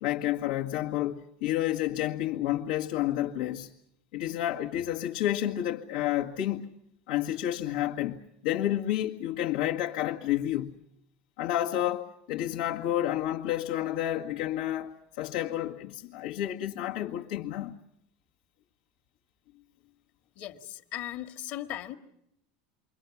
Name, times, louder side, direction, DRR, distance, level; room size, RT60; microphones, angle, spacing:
voice 1, 0.0-3.7 4.1-6.7 7.1-10.8 11.4-17.7, left 13 dB, 80° left, 1.8 m, -30 dB
voice 2, 20.4-22.0, left 13 dB, 50° left, 2.0 m, -38 dB
29.0 x 24.0 x 7.2 m
supercardioid pair, 155°, 4 cm